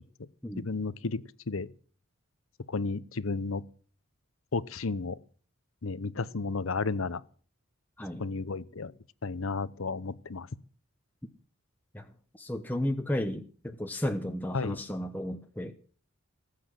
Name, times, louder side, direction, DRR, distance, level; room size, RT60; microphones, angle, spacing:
voice 1, 0.6-1.7 2.7-3.6 4.5-5.2 5.8-7.2 8.2-8.9 9.2-10.5 14.5-14.8, left 3 dB, 70° left, 0.8 m, -32 dB
voice 2, 11.9-15.7, left 1 dB, 10° left, 0.9 m, -33 dB
19.0 x 8.5 x 7.6 m
head